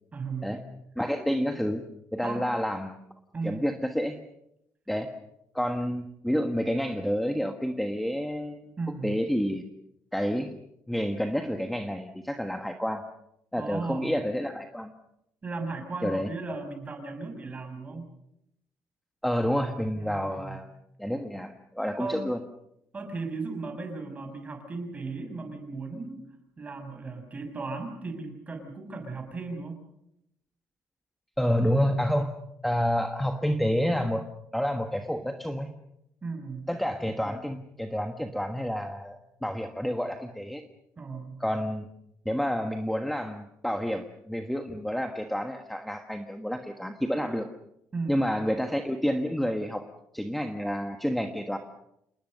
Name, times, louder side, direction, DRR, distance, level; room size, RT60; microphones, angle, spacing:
voice 1, 0.1-0.6 2.2-2.4 3.3-3.7 8.8-9.2 13.6-14.2 15.4-18.1 19.9-20.6 22.0-22.2 22.9-26.2 26.6-29.8 36.2-36.7 41.0-41.4 47.9-48.2, right 3 dB, 25° right, 6 dB, 6.5 m, -36 dB
voice 2, 1.0-1.8 2.1-3.0 3.4-4.2 4.9-5.1 5.5-8.7 9.0-9.6 10.1-10.5 10.9-13.0 13.5-14.9 16.0-16.3 19.2-20.7 21.0-22.4 31.4-32.3 32.6-34.3 34.5-35.7 36.7-40.6 41.4-41.9 42.2-47.5 48.1-49.9 50.1-51.6, equal, ahead, 5 dB, 1.4 m, -29 dB
27.5 x 20.5 x 6.7 m, 0.80 s
cardioid pair, 130°, 6 cm